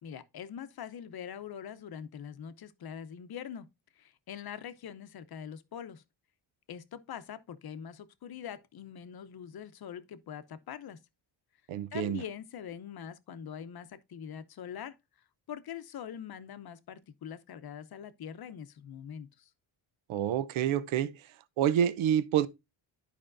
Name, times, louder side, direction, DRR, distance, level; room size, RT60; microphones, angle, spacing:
voice 1, 0.0-3.7 3.9-6.0 6.7-11.0 11.9-15.0 15.5-19.5, left 8 dB, 50° left, 0.7 m, -43 dB
voice 2, 11.7-12.2 20.1-21.3 21.6-22.5, right 10 dB, 80° right, 0.7 m, -28 dB
11.0 x 5.1 x 2.5 m
cardioid pair, 135°, 47 cm